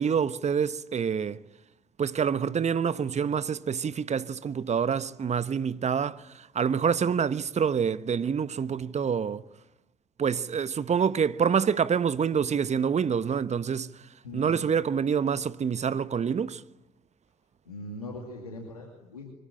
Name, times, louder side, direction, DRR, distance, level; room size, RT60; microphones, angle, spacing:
voice 1, 0.0-1.4 2.0-9.4 10.2-13.9 14.3-16.6, right 7 dB, 40° right, 1.1 m, -27 dB
voice 2, 14.2-14.5 17.7-19.3, left 1 dB, 90° left, 2.5 m, -40 dB
24.5 x 21.5 x 10.0 m
figure-of-eight pair, 45°, 18 cm